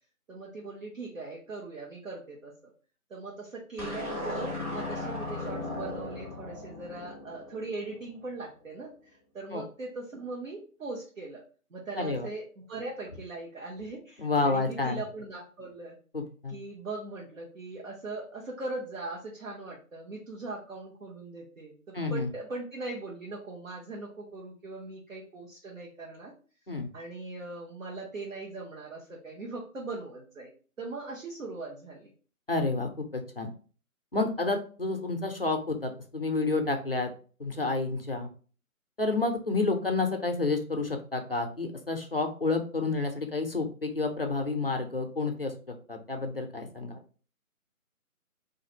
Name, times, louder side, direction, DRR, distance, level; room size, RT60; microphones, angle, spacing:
voice 1, 0.3-2.7 3.1-11.4 11.7-12.4 12.7-16.0 16.5-26.3 26.9-30.5 30.8-32.1, right 3 dB, 60° right, -3 dB, 0.9 m, -40 dB
sound 1, 3.8-8.2, left 2 dB, 25° right, 0.9 m, -37 dB
voice 2, 12.0-12.3 14.2-15.0 16.1-16.6 21.9-22.3 26.7-26.9 32.5-33.5 34.1-37.1 37.4-38.3 39.0-45.5 45.9-47.0, left 3 dB, 45° left, 4 dB, 0.4 m, -29 dB
2.6 x 2.5 x 4.0 m, 0.39 s
figure-of-eight pair, 155°, 44 cm